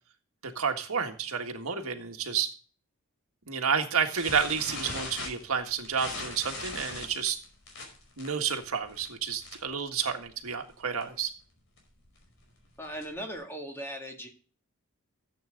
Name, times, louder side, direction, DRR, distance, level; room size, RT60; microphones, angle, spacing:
voice 1, 0.4-2.5 3.5-7.4 8.2-11.3, right 6 dB, 90° right, 5 dB, 1.7 m, -30 dB
sound 1, 4.2-9.8 10.1-10.3 10.6-10.7 11.0-11.3 11.8-13.3, left 2 dB, 60° left, 5.1 m, -40 dB
voice 2, 12.8-14.3, equal, 10° left, 2 dB, 2.1 m, -38 dB
14.5 x 8.4 x 3.9 m, 0.39 s
head